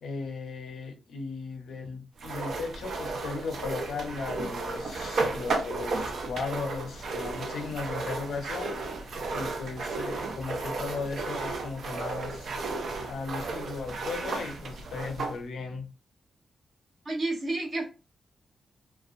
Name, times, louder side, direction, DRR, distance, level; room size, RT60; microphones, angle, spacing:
voice 1, 0.0-8.8 9.3-12.5 13.0-15.9, left 4 dB, 80° left, 0.5 m, -36 dB
sound 1, 2.2-15.4, right 3 dB, 60° right, 0.4 m, -34 dB
voice 2, 17.1-17.8, right 2 dB, 35° right, 0.7 m, -30 dB
2.4 x 2.1 x 2.5 m
wide cardioid pair, 180°, 0 cm